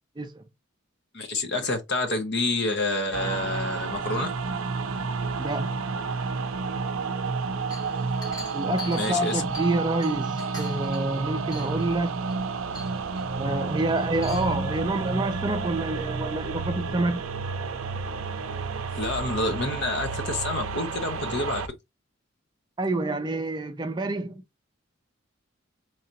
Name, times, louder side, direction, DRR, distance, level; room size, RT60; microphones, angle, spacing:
voice 1, 1.1-4.3 9.0-9.4 19.0-21.6, left 2 dB, 55° left, 0.9 m, -28 dB
sound 1, 3.1-21.7, right 4 dB, 80° right, 0.5 m, -31 dB
voice 2, 5.4-5.8 8.5-12.2 13.4-17.2 22.8-24.4, right 2 dB, 20° right, 0.4 m, -28 dB
Chink clink, 7.7-9.8 10.0-11.1 11.5-11.9 12.3-12.4 12.7-13.2 14.0-14.6, left 2 dB, 20° left, 1.5 m, -42 dB
3.8 x 3.3 x 2.9 m
head